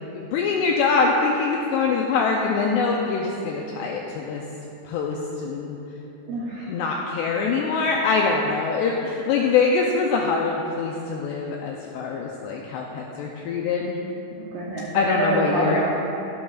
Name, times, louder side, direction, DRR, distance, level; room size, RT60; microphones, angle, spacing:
voice 1, 0.1-4.4 4.9-5.8 6.7-14.0 14.9-15.9, left 4 dB, 90° left, -1 dB, 2.4 m, -24 dB
voice 2, 6.3-6.7 14.3-15.9, right 1 dB, 80° right, -5 dB, 2.1 m, -26 dB
16.0 x 11.5 x 2.4 m, 3.0 s
omnidirectional pair, 5.5 m